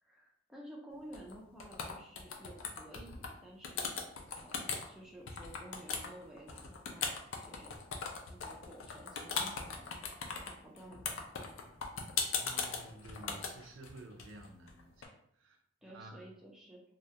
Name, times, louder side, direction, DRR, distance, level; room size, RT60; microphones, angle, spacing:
voice 1, 0.0-4.1 4.4-7.1 7.4-7.8 8.3-11.7 15.8-16.8, right 1 dB, 5° right, -3 dB, 0.3 m, -53 dB
sound 1, 1.1-1.3 1.6-3.3 3.6-4.9 5.3-15.1, left 5 dB, 80° left, 0.4 m, -38 dB
voice 2, 12.3-15.6 15.8-16.2, right 2 dB, 70° right, 3 dB, 0.4 m, -52 dB
2.3 x 2.0 x 2.7 m, 0.69 s
head